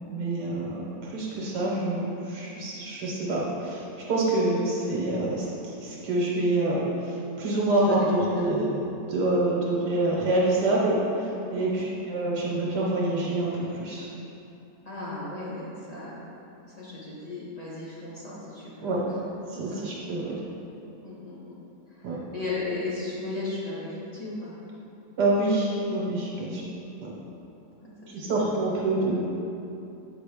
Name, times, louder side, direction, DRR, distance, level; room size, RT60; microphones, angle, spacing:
voice 1, 0.1-8.8 9.1-14.1 18.8-19.1 19.5-20.4 22.0-22.2 25.2-26.6 27.0-27.1 28.1-29.2, right 2 dB, 80° right, -4 dB, 1.5 m, -26 dB
voice 2, 7.8-8.5 11.6-11.9 14.8-16.1 16.7-19.2 19.5-19.8 21.0-21.5 21.9-24.5 26.4-26.6 27.8-28.5, left 2 dB, 25° left, -8 dB, 1.1 m, -36 dB
6.9 x 5.2 x 3.4 m, 2.8 s
omnidirectional pair, 1.8 m